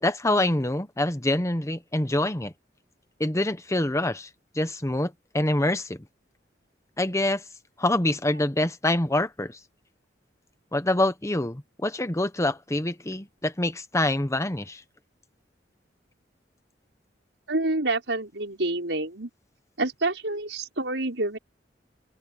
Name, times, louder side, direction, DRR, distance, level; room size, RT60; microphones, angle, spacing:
voice 1, 0.0-2.5 3.2-4.3 4.5-6.0 7.0-7.4 7.8-9.6 10.7-14.8, left 1 dB, 15° left, 1.1 m, -25 dB
voice 2, 17.5-19.3 19.8-21.4, right 2 dB, 85° right, 5.8 m, -28 dB
open air
head